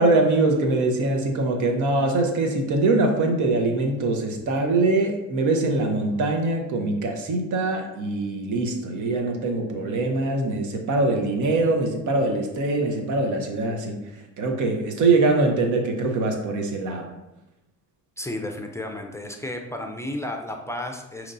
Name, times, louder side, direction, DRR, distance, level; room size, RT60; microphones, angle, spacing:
voice 1, 0.0-14.0 14.4-17.1, right 2 dB, 75° right, 3 dB, 0.9 m, -23 dB
voice 2, 18.2-21.3, left 1 dB, 10° left, 3 dB, 0.4 m, -32 dB
6.4 x 3.0 x 2.6 m, 0.94 s
cardioid pair, 90°, 30 cm